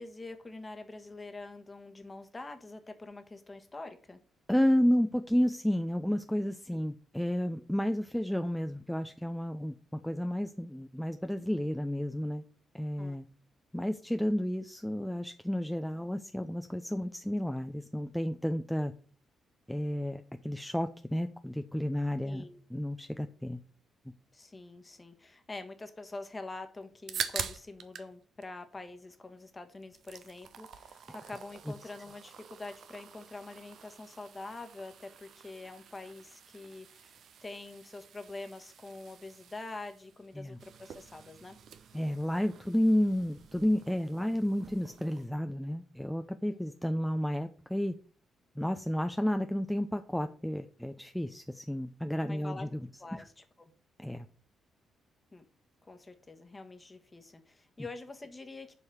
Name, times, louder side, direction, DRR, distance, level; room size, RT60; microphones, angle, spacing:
voice 1, 0.0-4.2 6.7-6.8 13.0-13.2 22.2-22.6 24.3-41.6 46.5-46.6 52.2-52.7 53.0-53.7 55.3-55.4 55.8-58.7, left 2 dB, 25° left, 7 dB, 1.5 m, -45 dB
voice 2, 4.5-12.4 12.7-13.2 13.7-18.9 19.7-23.6 31.7-31.8 40.4-40.6 41.9-47.9 48.6-52.8 53.1-53.3 54.0-54.3, equal, 5° left, 7 dB, 0.6 m, -31 dB
sound 1, 26.8-28.1 28.4-29.4 29.8-45.3, right 7 dB, 60° right, 0.7 m, -46 dB
7.2 x 4.8 x 6.2 m, 0.43 s
figure-of-eight pair, 40°, 0 cm